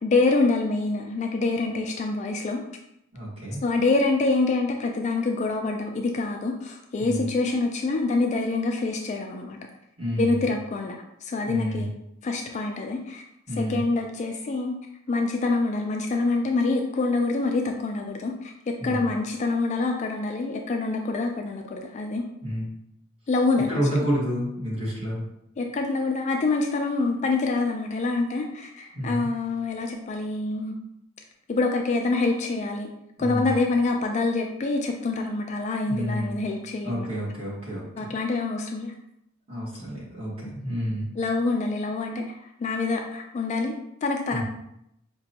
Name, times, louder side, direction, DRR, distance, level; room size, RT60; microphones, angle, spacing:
voice 1, 0.0-2.6 3.6-9.6 10.2-12.0 12.2-13.2 13.6-14.8 15.1-22.2 23.3-23.7 25.6-30.8 31.5-32.9 33.2-37.1 38.0-38.9 41.2-43.7 44.0-44.4, left 3 dB, 35° left, 2 dB, 0.3 m, -26 dB
voice 2, 3.1-3.6 7.0-7.3 10.0-10.4 11.5-11.9 13.5-13.8 18.8-19.1 22.4-22.7 23.7-25.2 28.9-29.3 33.2-33.5 35.9-36.4 36.8-38.1 39.5-41.1 44.3-44.4, equal, 30° right, -6 dB, 1.4 m, -29 dB
5.0 x 2.2 x 2.8 m, 0.78 s
head